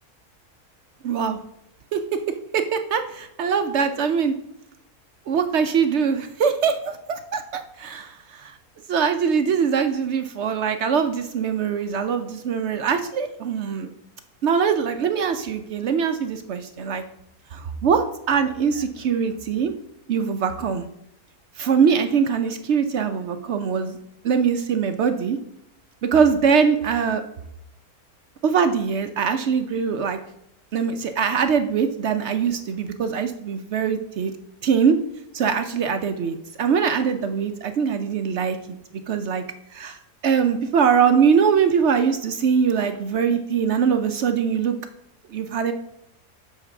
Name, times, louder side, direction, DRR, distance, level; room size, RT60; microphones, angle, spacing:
voice 1, 1.0-1.4 1.9-2.2 2.5-4.3 5.3-8.6 8.9-13.9 14.4-17.0 17.5-19.7 20.1-20.8 21.6-24.0 24.2-25.4 26.1-27.2 28.4-30.2 30.7-34.3 34.6-35.0 35.3-38.6 39.1-39.4 39.7-40.0 40.2-44.7 45.3-45.7, right 6 dB, 65° right, 7 dB, 0.7 m, -22 dB
7.3 x 3.5 x 5.8 m, 0.79 s
omnidirectional pair, 1.6 m